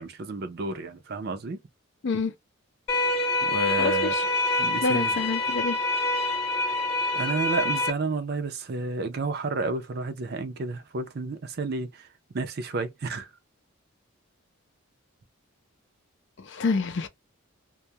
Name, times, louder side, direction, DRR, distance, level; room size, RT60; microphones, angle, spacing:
voice 1, 0.0-1.6 3.4-4.1 4.6-5.2 7.1-12.1 12.3-13.3, right 3 dB, 50° right, 0.5 m, -31 dB
sound 1, 2.9-7.9, left 2 dB, 30° left, 0.9 m, -26 dB
voice 2, 3.8-4.3 4.8-5.8 16.4-17.1, left 4 dB, 55° left, 0.5 m, -27 dB
2.3 x 2.1 x 2.7 m
head